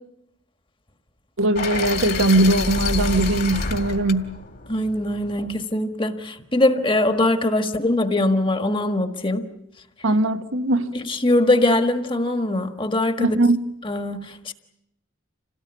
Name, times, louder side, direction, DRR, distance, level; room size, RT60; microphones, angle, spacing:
voice 1, 1.4-4.3 10.0-10.9 13.2-13.6, right 2 dB, 90° right, 1.4 m, -20 dB
sound 1, 1.5-5.6, left 3 dB, 50° left, 2.1 m, -28 dB
voice 2, 4.7-9.5 10.9-13.4 13.8-14.5, left 1 dB, 25° left, 1.5 m, -22 dB
27.5 x 18.0 x 9.7 m
head